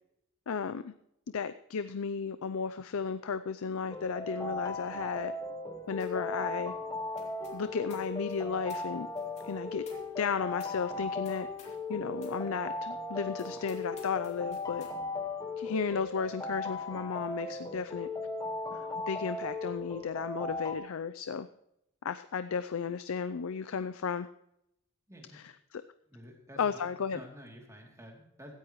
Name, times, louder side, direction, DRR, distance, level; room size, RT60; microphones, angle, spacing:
voice 1, 0.5-0.9 1.3-5.3 5.9-6.7 7.5-9.1 9.4-9.9 10.2-14.9 15.6-18.1 18.7-21.5 22.0-24.3 25.3-25.8 26.6-27.2, left 6 dB, 65° left, 12 dB, 0.5 m, -34 dB
sound 1, 3.9-20.7, left 2 dB, 15° left, 1.1 m, -37 dB
sound 2, 6.0-6.3 6.5-11.9 12.2-12.4 12.9-13.0 13.3-15.0, left 5 dB, 30° left, 2.9 m, -58 dB
voice 2, 25.1-25.4 26.1-26.8 27.1-28.6, equal, 15° right, 1 dB, 2.8 m, -50 dB
16.5 x 13.5 x 3.1 m, 0.80 s
head